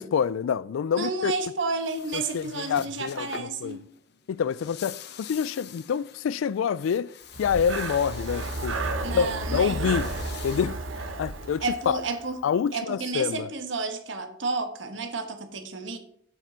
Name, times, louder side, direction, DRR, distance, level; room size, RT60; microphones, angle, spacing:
voice 1, 0.0-1.3 2.1-3.8 4.3-7.1 7.4-8.8 9.1-10.1 10.4-12.0 12.4-13.5, left 7 dB, 85° left, 0.3 m, -27 dB
voice 2, 1.0-3.9 9.0-10.1 11.6-12.4 12.7-16.0, right 3 dB, 70° right, 1.3 m, -31 dB
sound 1, 1.2-11.9, left 8 dB, 55° left, 0.7 m, -46 dB
Breathing, 7.3-12.3, right 2 dB, 90° right, 1.0 m, -32 dB
7.9 x 7.3 x 4.4 m
head